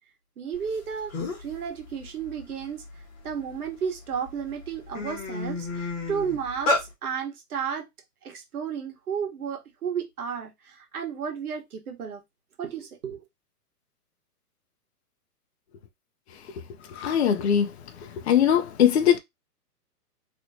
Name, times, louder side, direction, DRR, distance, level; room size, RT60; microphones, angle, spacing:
voice 1, 0.4-1.1 1.4-2.8 3.2-7.9 8.2-12.2 12.6-13.2, right 7 dB, 65° right, 1.4 m, -33 dB
sound 1, 0.8-0.9 1.1-1.5 2.0-3.6 4.1-4.3 4.6-6.8, left 2 dB, 20° left, 1.3 m, -30 dB
voice 2, 16.9-17.7 18.0-19.2, left 9 dB, 45° left, 0.6 m, -21 dB
3.1 x 3.0 x 2.7 m
hypercardioid pair, 165°, 47 cm